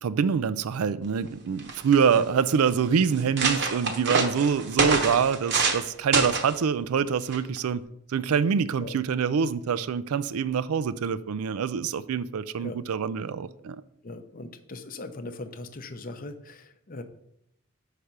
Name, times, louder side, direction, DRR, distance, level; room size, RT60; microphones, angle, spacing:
voice 1, 0.0-7.8 8.1-13.8, right 6 dB, 90° right, 0.4 m, -25 dB
sound 1, 1.3-1.4 1.6-2.2 2.8-2.9 3.1-5.8 6.1-6.5 7.3-7.6, right 4 dB, 50° right, 1.0 m, -26 dB
voice 2, 14.0-17.0, left 2 dB, 40° left, 0.6 m, -39 dB
6.6 x 4.9 x 5.8 m
head